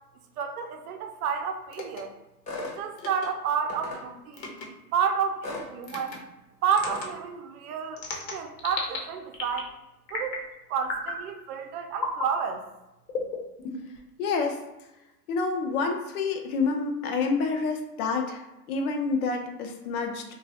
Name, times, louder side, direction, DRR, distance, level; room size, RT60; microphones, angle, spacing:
voice 1, 0.4-2.1 2.6-4.6 4.9-6.2 6.6-8.0 8.3-9.7 10.1-10.4 10.7-12.6, right 7 dB, 65° right, 5 dB, 0.6 m, -30 dB
sound 1, 1.7-2.0 3.0-3.3 4.3-4.7 5.8-6.2 6.7-7.1 8.0-9.0 9.3-9.7 10.1-10.5 10.8-11.2 11.9-12.3 13.1-14.0, left 3 dB, 85° left, 0.9 m, -34 dB
sound 2, 2.5-2.8 3.7-4.0 5.4-5.7 6.9-7.0, left 2 dB, 15° left, 0.6 m, -36 dB
voice 2, 14.2-14.6 15.3-20.2, left 4 dB, 60° left, 4 dB, 0.7 m, -28 dB
2.9 x 2.3 x 2.8 m, 0.95 s
hypercardioid pair, 120°, 49 cm